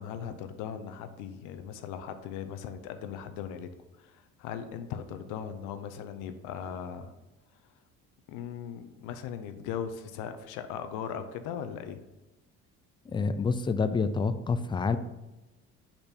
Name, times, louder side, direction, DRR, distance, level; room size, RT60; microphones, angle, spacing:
voice 1, 0.0-3.7 4.0-7.1 8.3-12.0, left 8 dB, 85° left, 9 dB, 0.7 m, -38 dB
voice 2, 13.1-15.0, left 4 dB, 15° left, 11 dB, 0.3 m, -28 dB
5.5 x 4.4 x 4.3 m, 1.0 s
cardioid pair, 110°, 30 cm